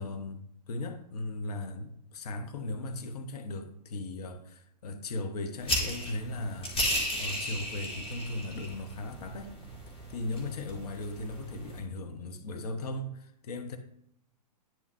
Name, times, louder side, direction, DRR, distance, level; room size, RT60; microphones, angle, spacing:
voice 1, 0.0-6.8 7.2-9.5 10.1-13.8, left 2 dB, 65° left, 6 dB, 1.0 m, -37 dB
sound 1, 5.6-11.8, equal, 25° left, 2.9 m, -35 dB
9.7 x 7.3 x 2.6 m, 0.75 s
hypercardioid pair, 115°, 21 cm